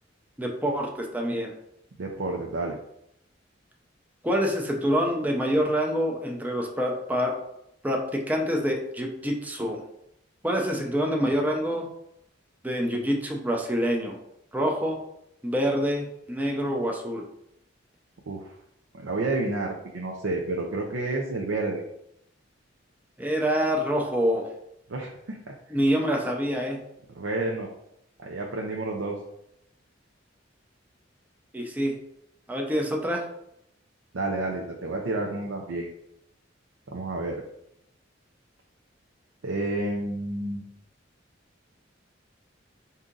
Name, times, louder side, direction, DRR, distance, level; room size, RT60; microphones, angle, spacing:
voice 1, 0.4-1.5 4.2-7.3 7.8-9.8 10.4-11.9 12.6-14.2 14.5-15.0 15.4-17.2 23.2-24.5 25.7-26.8 31.5-32.0 32.5-33.3, equal, 10° right, 0 dB, 0.5 m, -26 dB
voice 2, 2.0-2.8 18.3-18.5 19.0-21.8 24.9-25.5 27.2-27.7 28.2-29.1 34.1-35.9 36.9-37.4 39.4-40.6, right 2 dB, 80° right, -1 dB, 0.6 m, -30 dB
4.8 x 2.7 x 3.8 m, 0.77 s
head